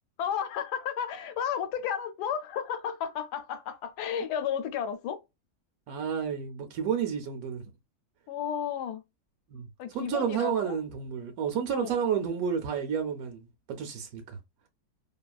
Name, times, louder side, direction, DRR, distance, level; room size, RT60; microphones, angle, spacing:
voice 1, 0.2-5.2 8.3-9.0 9.8-10.8 11.7-12.0, left 8 dB, 85° left, 1.2 m, -33 dB
voice 2, 5.9-7.6 9.5-9.7 9.9-14.4, right 7 dB, 70° right, 1.0 m, -31 dB
2.9 x 2.3 x 2.2 m
omnidirectional pair, 1.7 m